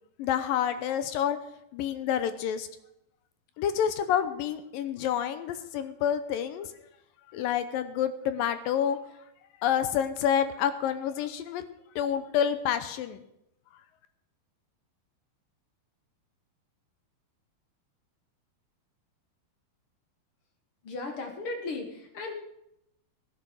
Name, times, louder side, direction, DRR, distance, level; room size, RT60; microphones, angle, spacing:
voice 1, 0.2-1.4 1.7-2.7 3.6-6.7 7.3-9.0 9.6-11.6 12.0-13.2, left 9 dB, 80° left, 11 dB, 2.4 m, -28 dB
voice 2, 20.8-22.3, left 3 dB, 45° left, 4 dB, 2.1 m, -36 dB
16.0 x 10.5 x 6.3 m, 0.80 s
omnidirectional pair, 4.3 m